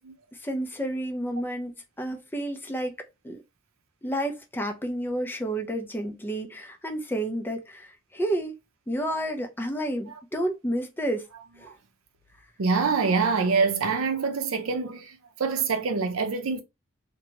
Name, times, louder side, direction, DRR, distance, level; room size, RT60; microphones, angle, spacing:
voice 1, 0.4-1.7 2.0-2.9 3.2-3.4 4.0-8.5 8.9-11.3 11.6-11.7, right 1 dB, 10° left, 0.5 m, -30 dB
voice 2, 12.6-16.6, right 4 dB, 75° right, 0.6 m, -25 dB
2.8 x 2.2 x 2.8 m
head